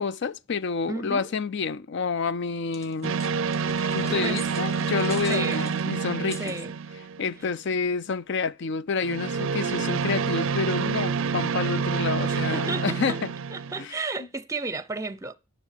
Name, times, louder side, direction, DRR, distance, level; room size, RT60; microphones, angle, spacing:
voice 1, 0.0-3.2 3.9-6.5 7.2-13.3 13.8-14.3, left 5 dB, 55° left, 0.4 m, -29 dB
voice 2, 0.9-1.3 4.2-4.4 5.3-5.7 6.4-6.7 12.3-13.2 13.5-15.4, right 3 dB, 15° right, 0.7 m, -33 dB
sound 1, 2.7-6.6, left 1 dB, 15° left, 1.2 m, -43 dB
sound 2, 3.0-7.5 9.0-13.8, right 5 dB, 60° right, 0.5 m, -28 dB
11.0 x 6.0 x 6.6 m
head